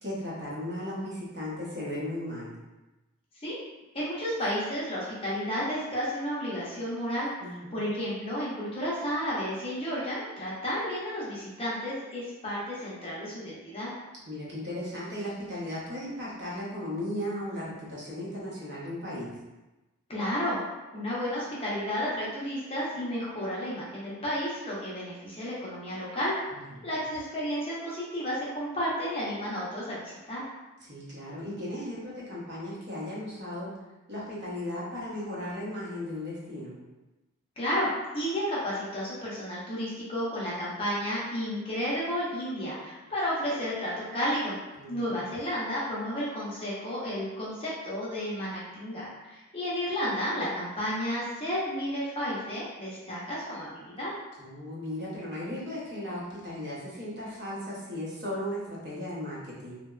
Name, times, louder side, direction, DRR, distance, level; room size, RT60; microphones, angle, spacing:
voice 1, 0.0-2.6 7.4-7.8 14.3-19.3 26.5-26.9 30.8-33.7 34.1-36.8 44.8-45.3 54.4-59.8, left 1 dB, 50° right, -7 dB, 0.7 m, -36 dB
voice 2, 3.9-7.3 7.7-13.9 20.1-20.6 20.9-26.3 26.8-30.4 37.6-37.9 38.1-44.6 44.9-54.1, equal, 25° left, -7 dB, 0.5 m, -32 dB
2.8 x 2.1 x 2.3 m, 1.1 s
head